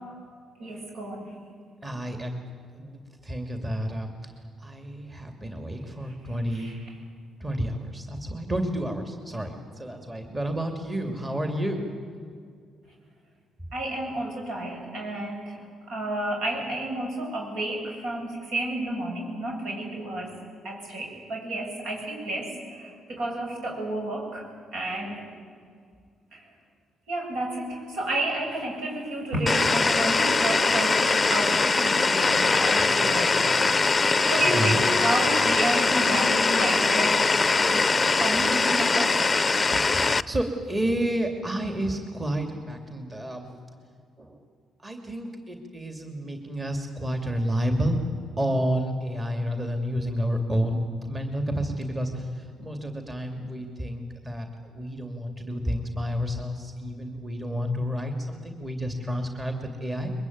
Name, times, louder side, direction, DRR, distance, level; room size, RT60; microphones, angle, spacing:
voice 1, 0.6-1.3 6.5-6.8 13.7-20.4 20.6-24.5 24.7-25.2 26.3-26.4 27.1-33.4 34.3-37.3 37.6-37.9 38.2-39.4 39.7-39.8, right 1 dB, 80° right, 0 dB, 7.6 m, -31 dB
voice 2, 1.8-4.3 4.6-6.7 7.4-11.9 32.8-33.6 34.4-34.9 37.9-38.0 39.7-43.5 44.2-44.4 44.8-48.1 48.4-60.1, equal, 20° right, 4 dB, 2.6 m, -30 dB
sound 1, 29.5-40.2, left 3 dB, 25° left, 0.6 m, -22 dB
22.5 x 22.0 x 9.5 m, 2.2 s
cardioid pair, 90°, 0 cm